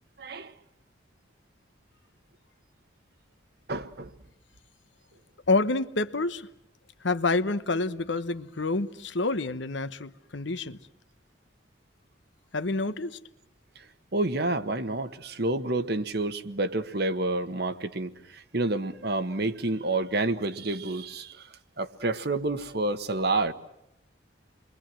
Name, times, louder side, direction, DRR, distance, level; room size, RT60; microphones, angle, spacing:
voice 1, 0.2-0.5 3.7-4.1 14.1-21.5 21.8-23.5, right 2 dB, 55° right, 1.4 m, -29 dB
voice 2, 5.5-6.5 7.0-10.8 12.5-13.2, left 3 dB, 70° left, 1.1 m, -28 dB
29.0 x 22.5 x 7.6 m
head